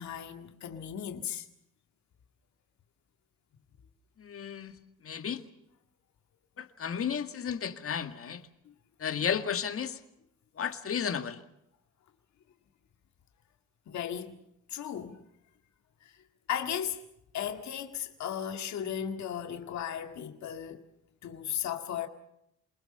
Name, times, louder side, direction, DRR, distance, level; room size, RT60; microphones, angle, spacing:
voice 1, 0.0-1.5 13.9-14.4 14.7-15.2 16.0-16.1 16.5-17.0 17.3-20.9 21.2-22.1, left 9 dB, 65° left, 2.0 m, -36 dB
voice 2, 4.2-5.4 6.6-8.4 9.0-10.0 10.6-11.4, left 7 dB, 50° left, 2.0 m, -33 dB
28.5 x 20.0 x 6.8 m
cardioid pair, 90°, 30 cm